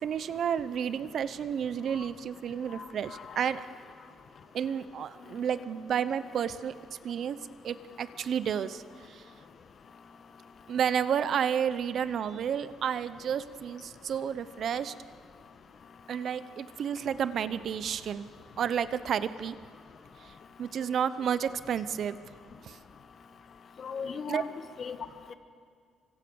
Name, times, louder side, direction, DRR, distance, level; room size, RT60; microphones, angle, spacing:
voice 1, 0.0-3.7 4.5-7.4 7.6-9.2 10.7-14.9 16.1-18.3 18.6-19.6 20.2-20.3 20.6-22.2 22.6-22.8 24.3-24.4, right 8 dB, 45° right, 15 dB, 0.8 m, -31 dB
voice 2, 2.8-3.5 23.8-24.5 24.8-25.0 25.3-25.4, left 6 dB, 35° left, 10 dB, 1.5 m, -38 dB
29.5 x 25.5 x 7.1 m, 2.2 s
cardioid pair, 175°, 0 cm